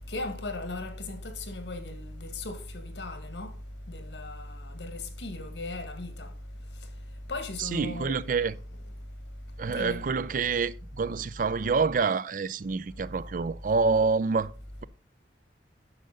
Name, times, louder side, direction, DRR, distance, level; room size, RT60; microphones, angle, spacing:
voice 1, 0.1-3.5 3.9-6.3 7.3-8.2 9.7-10.0, left 2 dB, 85° left, 1.8 m, -37 dB
voice 2, 7.6-8.5 9.6-14.5, right 4 dB, 45° right, 0.4 m, -27 dB
9.8 x 6.7 x 3.9 m
head